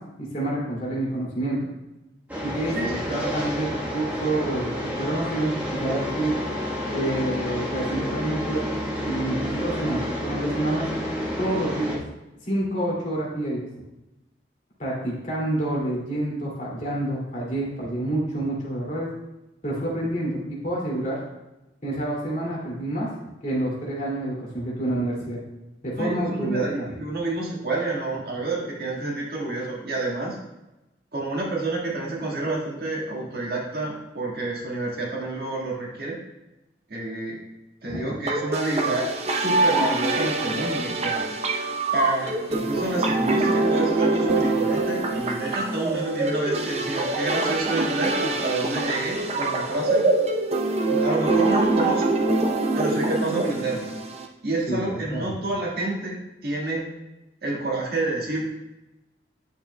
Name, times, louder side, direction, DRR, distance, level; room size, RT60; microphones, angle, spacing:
voice 1, 0.2-1.6 2.4-6.3 6.9-8.6 9.0-10.9 11.4-12.0 12.4-13.7 14.8-19.1 19.6-21.2 21.8-23.1 23.4-25.4 25.8-26.9 37.9-38.0 54.7-55.3, right 1 dB, 45° left, -5 dB, 2.5 m, -28 dB
sound 1, 2.3-12.0, equal, 10° right, 1.2 m, -30 dB
voice 2, 2.8-3.3 26.0-30.4 31.1-36.2 36.9-37.4 37.8-41.2 41.9-50.0 50.9-52.2 52.7-53.9 54.4-56.2 56.4-56.8 57.4-58.5, right 2 dB, 60° right, -3 dB, 1.7 m, -29 dB
sound 2, 38.3-54.3, right 2 dB, 35° right, 0.6 m, -24 dB
9.8 x 6.6 x 2.2 m, 0.98 s
head